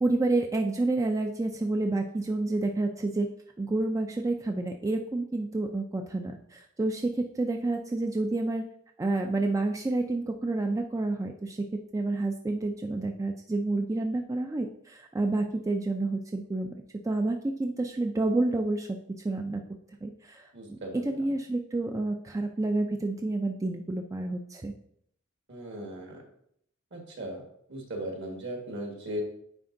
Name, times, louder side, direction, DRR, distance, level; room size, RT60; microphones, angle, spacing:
voice 1, 0.0-3.3 3.6-8.7 9.0-16.7 17.0-19.0 19.2-19.6 20.0-24.7, right 2 dB, 15° right, 4 dB, 0.3 m, -29 dB
voice 2, 20.5-21.0 25.5-26.2 26.9-27.4 27.7-29.2, right 1 dB, 60° right, 0 dB, 1.6 m, -37 dB
9.4 x 4.3 x 2.6 m, 0.70 s
head